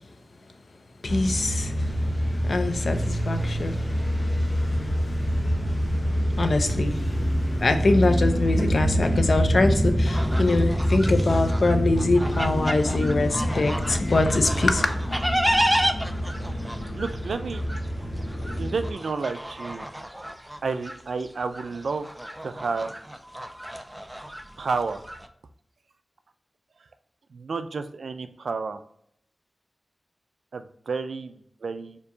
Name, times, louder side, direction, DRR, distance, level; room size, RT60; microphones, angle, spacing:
voice 1, 1.0-1.9 2.4-3.8 6.4-7.0 7.6-14.9, left 2 dB, 60° left, 7 dB, 0.5 m, -24 dB
sound 1, 1.0-18.9, equal, 35° left, 0.8 m, -26 dB
sound 2, 10.0-25.3, equal, 5° right, 0.3 m, -32 dB
voice 2, 16.9-17.6 18.6-19.9 20.6-22.1 22.4-22.9 24.6-25.0 27.3-28.8 30.5-32.0, right 4 dB, 90° right, 9 dB, 0.3 m, -30 dB
4.4 x 2.8 x 2.6 m, 0.71 s
wide cardioid pair, 110°, 0 cm